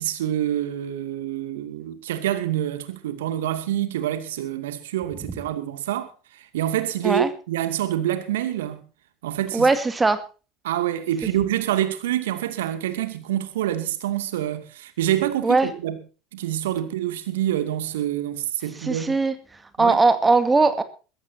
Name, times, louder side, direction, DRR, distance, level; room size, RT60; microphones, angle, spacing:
voice 1, 0.0-8.8 9.2-9.7 10.6-16.0 16.3-19.2 19.8-20.0, right 12 dB, 75° right, 2.5 m, -26 dB
voice 2, 9.5-10.2 15.4-15.7 18.8-19.3 19.8-20.8, right 3 dB, 15° right, 2.4 m, -19 dB
23.0 x 14.5 x 2.8 m
hypercardioid pair, 75°, 0 cm